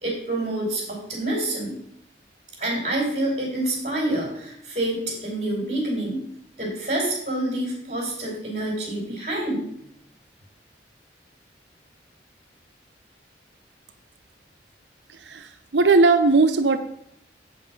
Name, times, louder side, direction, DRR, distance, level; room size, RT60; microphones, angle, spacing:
voice 1, 0.0-1.8 2.6-6.2 6.6-9.6, right 1 dB, 40° right, -4 dB, 3.4 m, -27 dB
voice 2, 15.1-16.8, right 3 dB, 75° right, 8 dB, 0.7 m, -18 dB
8.0 x 5.8 x 5.8 m, 0.71 s
head